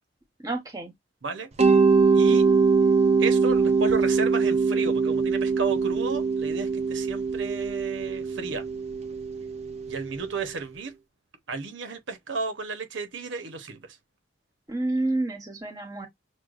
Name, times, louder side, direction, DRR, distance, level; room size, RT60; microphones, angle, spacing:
voice 1, 0.4-0.9 2.3-2.4 14.7-16.1, right 2 dB, 20° right, 1.0 m, -29 dB
Mallet percussion, 1.6-10.3, right 4 dB, 35° right, 0.5 m, -23 dB
voice 2, 2.1-2.5 3.2-8.6 9.9-11.0 11.5-14.0, right 4 dB, 85° right, 0.8 m, -33 dB
6.2 x 2.2 x 2.4 m
head